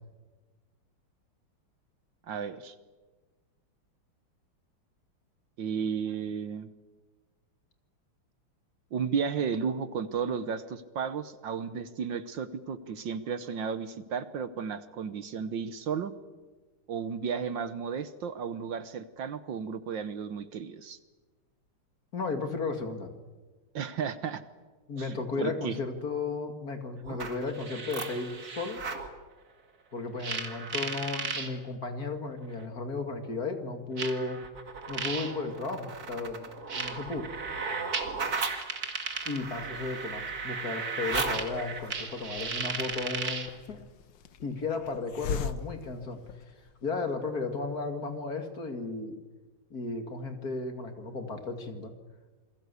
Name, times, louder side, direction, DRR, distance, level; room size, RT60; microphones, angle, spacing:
voice 1, 2.3-2.7 5.6-6.7 8.9-16.1 16.9-21.0 23.7-24.4 25.0-25.8, right 6 dB, 65° right, 13 dB, 1.7 m, -33 dB
voice 2, 22.1-23.1 24.9-28.8 29.9-34.4 34.9-36.5 36.7-37.3 39.3-43.8 44.4-46.2 46.8-49.2 49.7-51.9, left 3 dB, 45° left, 7 dB, 2.5 m, -34 dB
sound 1, 27.0-29.1 30.2-31.5 32.6-32.7 34.0-43.6, right 4 dB, 45° right, 2.6 m, -35 dB
Hiss, 41.4-46.8, left 6 dB, 65° left, 1.7 m, -41 dB
28.0 x 21.5 x 8.3 m, 1.3 s
omnidirectional pair, 2.4 m